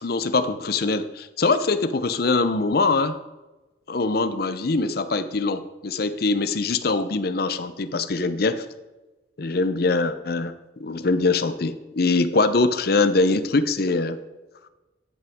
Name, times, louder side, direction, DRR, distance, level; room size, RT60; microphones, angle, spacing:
voice 1, 0.0-3.2 3.9-8.7 9.4-10.5 10.8-14.2, left 3 dB, 55° left, 11 dB, 0.6 m, -23 dB
11.0 x 8.5 x 3.6 m, 1.1 s
head